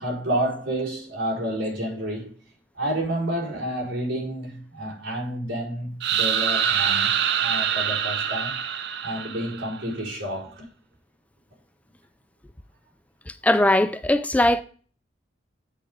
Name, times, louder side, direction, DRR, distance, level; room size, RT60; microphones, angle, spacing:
voice 1, 0.0-2.3 2.7-8.6 9.0-10.7, right 1 dB, 90° right, 4.5 m, -29 dB
sound 1, 6.0-9.8, right 8 dB, 65° right, 0.6 m, -25 dB
voice 2, 13.4-14.6, left 1 dB, 10° left, 0.4 m, -19 dB
8.6 x 5.0 x 5.1 m
head